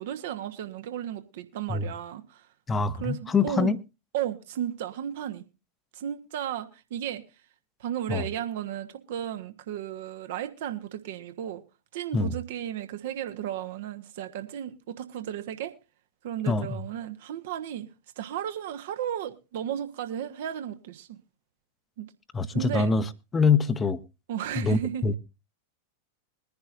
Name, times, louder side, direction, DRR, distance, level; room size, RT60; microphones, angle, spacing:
voice 1, 0.0-2.5 3.0-3.7 4.1-5.4 5.9-7.2 7.8-11.6 11.9-15.7 16.2-17.9 18.2-21.2 22.0-22.1 22.5-22.9 24.3-25.1, right 10 dB, 55° right, 1.2 m, -34 dB
voice 2, 2.7-3.8 8.1-8.2 12.1-12.3 16.5-16.8 22.3-23.0 23.3-24.0 24.6-25.1, left 4 dB, 15° left, 0.8 m, -24 dB
22.0 x 10.5 x 2.5 m
figure-of-eight pair, 90°, 0 cm